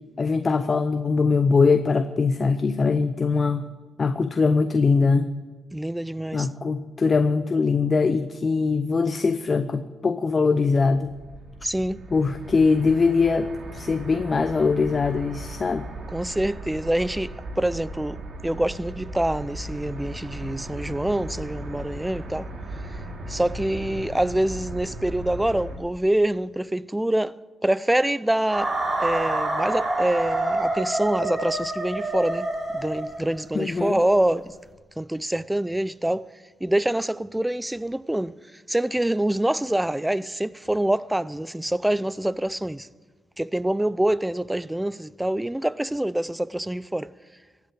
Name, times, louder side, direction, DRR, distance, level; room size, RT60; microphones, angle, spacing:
voice 1, 0.2-3.6 4.0-5.3 6.3-11.1 12.1-15.9 33.5-34.0, left 4 dB, 40° left, 0.7 m, -22 dB
voice 2, 5.7-6.5 11.6-12.0 16.1-22.5 23.3-27.3 27.6-32.5 32.7-34.5 35.0-36.3 36.6-38.3 38.7-42.9 43.4-47.1, right 1 dB, 10° right, 0.5 m, -25 dB
train tunnel(ambient and looped), 10.8-25.8, right 1 dB, 55° right, 2.6 m, -37 dB
sound 1, 28.5-33.5, right 2 dB, 30° right, 3.7 m, -27 dB
15.0 x 8.3 x 8.4 m
supercardioid pair, 60°, 0 cm